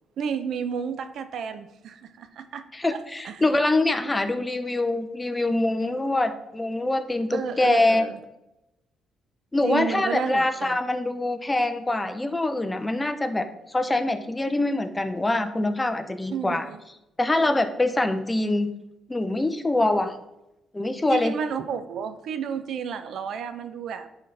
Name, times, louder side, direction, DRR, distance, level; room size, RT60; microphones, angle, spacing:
voice 1, 0.2-2.6 3.2-3.4 7.3-8.2 9.6-10.8 16.3-16.8 21.1-24.1, right 7 dB, 70° right, 10 dB, 0.5 m, -31 dB
voice 2, 2.7-8.0 9.5-16.6 17.2-18.7 19.1-20.1 20.7-21.4, left 2 dB, 15° left, 9 dB, 0.6 m, -24 dB
10.5 x 4.0 x 3.3 m, 0.93 s
cardioid pair, 90°, 0 cm